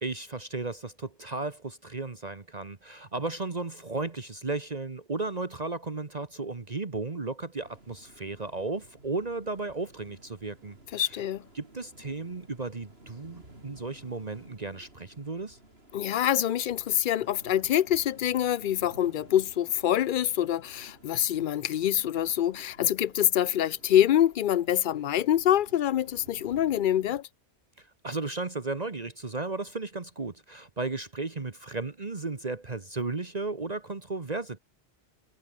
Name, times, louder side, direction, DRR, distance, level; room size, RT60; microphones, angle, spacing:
voice 1, 0.0-11.2 11.5-15.6 27.8-34.6, right 3 dB, 40° right, 1.5 m, -35 dB
sound 1, 7.6-27.2, right 1 dB, 75° right, 5.9 m, -54 dB
voice 2, 10.9-11.4 15.9-27.3, left 11 dB, 60° left, 0.6 m, -25 dB
omnidirectional pair, 1.1 m